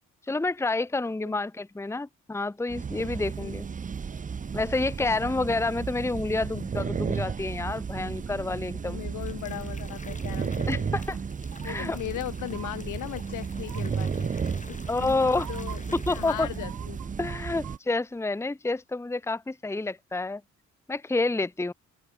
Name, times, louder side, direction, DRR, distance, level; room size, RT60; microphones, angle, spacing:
voice 1, 0.3-3.7 4.5-9.0 10.7-11.2 11.6-12.0 14.9-15.5 15.9-16.5 17.2-20.4 20.9-21.7, left 3 dB, 10° left, 0.9 m, -29 dB
sound 1, 2.7-17.8, right 6 dB, 25° right, 0.7 m, -33 dB
voice 2, 8.8-11.0 11.6-14.3 14.7-17.0, left 14 dB, 85° left, 5.6 m, -38 dB
sound 2, 8.9-16.9 17.2-17.6, left 3 dB, 25° left, 6.7 m, -49 dB
sound 3, 11.5-11.9 12.4-12.7 13.6-14.0 14.9-15.0 15.3-15.8 16.5-17.8 18.1-18.2, right 13 dB, 80° right, 2.3 m, -44 dB
open air
cardioid pair, 90°, 30 cm